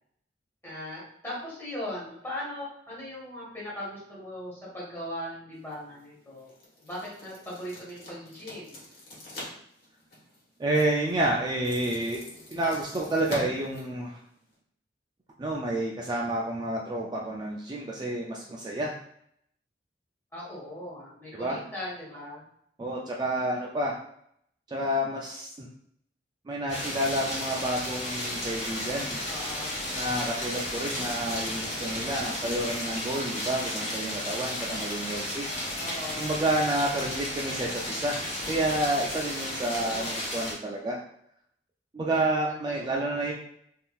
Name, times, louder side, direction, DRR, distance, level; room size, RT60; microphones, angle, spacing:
voice 1, 0.6-6.5 6.8-8.8 20.3-22.4 29.3-29.9 35.8-36.4 39.7-40.2 42.5-43.3, left 1 dB, 15° left, -7 dB, 1.4 m, -39 dB
sound 1, 5.5-14.6, left 1 dB, 60° left, 1.2 m, -46 dB
voice 2, 10.6-12.2 12.5-14.2 15.4-18.9 21.3-21.6 22.8-24.0 24.7-25.7 26.5-29.2 29.9-35.5 36.2-38.2 38.5-41.0 41.9-43.3, right 1 dB, 25° right, -3 dB, 0.3 m, -29 dB
sound 2, 26.7-40.5, left 1 dB, 40° left, 1.1 m, -33 dB
3.5 x 2.6 x 2.3 m, 0.71 s
head